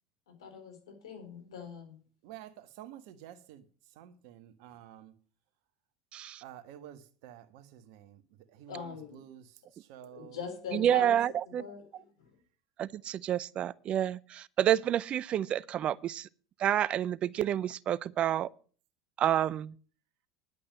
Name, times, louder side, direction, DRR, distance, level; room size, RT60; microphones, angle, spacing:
voice 1, 0.3-2.0 8.7-9.2 10.1-11.2 11.5-12.3, left 6 dB, 80° left, 4.0 m, -42 dB
voice 2, 2.2-5.1 6.4-10.4, right 11 dB, 65° right, 1.4 m, -51 dB
voice 3, 6.1-6.4 10.7-11.6 12.8-16.3 16.6-18.5 19.2-19.7, right 11 dB, 40° right, 0.5 m, -29 dB
11.0 x 8.4 x 6.3 m
hypercardioid pair, 85°, 3 cm